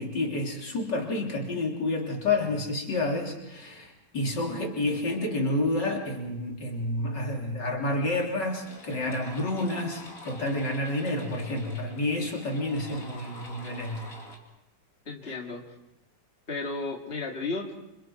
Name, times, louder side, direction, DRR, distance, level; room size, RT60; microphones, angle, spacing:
voice 1, 0.0-14.1 15.2-15.4, left 2 dB, 80° left, 0 dB, 4.0 m, -29 dB
sound 1, 8.2-14.4, left 1 dB, 50° left, 3.6 m, -46 dB
voice 2, 15.1-15.6 16.5-17.7, left 3 dB, 35° left, 0 dB, 2.7 m, -33 dB
29.5 x 26.5 x 4.6 m, 0.88 s
omnidirectional pair, 1.9 m